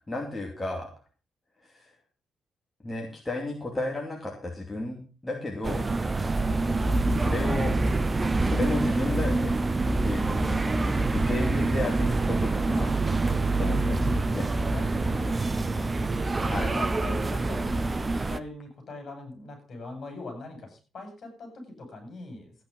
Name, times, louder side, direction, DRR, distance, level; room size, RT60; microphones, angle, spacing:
voice 1, 0.1-0.9 1.6-1.9 2.8-5.8 7.1-7.7 8.4-9.5 10.0-10.6 11.1-12.9 13.3-14.4 16.4-16.7, left 2 dB, 15° left, 0 dB, 2.6 m, -33 dB
sound 1, 5.6-18.4, right 2 dB, 20° right, 0.7 m, -26 dB
voice 2, 12.2-13.4 14.7-22.6, left 2 dB, 45° left, 5 dB, 7.1 m, -41 dB
14.5 x 9.4 x 5.4 m, 0.34 s
cardioid pair, 140°, 0 cm